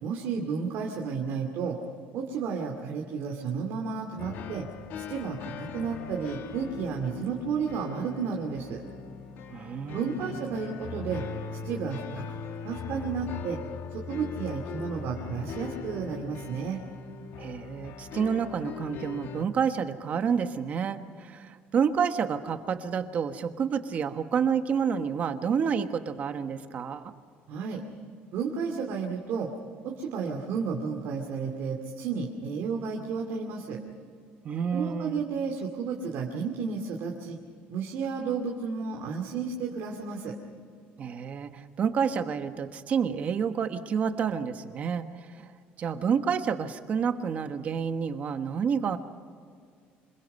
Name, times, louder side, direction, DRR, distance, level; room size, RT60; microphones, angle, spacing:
voice 1, 0.0-1.8 2.1-4.7 5.1-8.8 9.9-11.2 11.6-12.4 12.6-13.6 13.9-16.8 27.5-27.8 28.3-29.5 29.8-33.8 34.7-37.4 37.7-40.4, right 5 dB, 60° right, 0 dB, 2.4 m, -32 dB
sound 1, 4.2-19.5, left 6 dB, 60° left, 1.8 m, -40 dB
voice 2, 9.5-10.3 17.4-27.1 34.4-35.2 41.0-49.0, right 7 dB, 35° right, 8 dB, 1.3 m, -29 dB
26.5 x 22.0 x 5.5 m, 2.2 s
cardioid pair, 160°, 4 cm